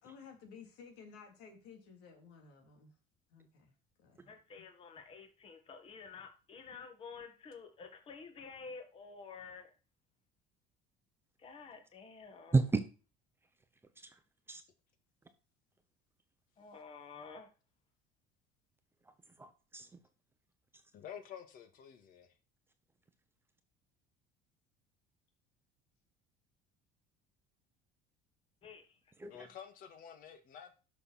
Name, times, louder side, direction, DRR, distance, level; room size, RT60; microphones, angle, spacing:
voice 1, 0.0-3.0 3.3-4.6, left 6 dB, 80° left, 3.3 m, -55 dB
voice 2, 4.3-9.7 11.4-12.5 16.6-17.5 28.6-29.0, left 5 dB, 30° left, 1.9 m, -50 dB
voice 3, 12.5-12.8 14.0-14.2 14.5-14.6 19.0-20.0 20.7-20.8 29.2-29.5, right 3 dB, 15° right, 0.9 m, -33 dB
voice 4, 20.9-22.4 29.3-30.8, left 8 dB, 50° left, 1.9 m, -50 dB
11.0 x 6.3 x 4.3 m
cardioid pair, 150°, 18 cm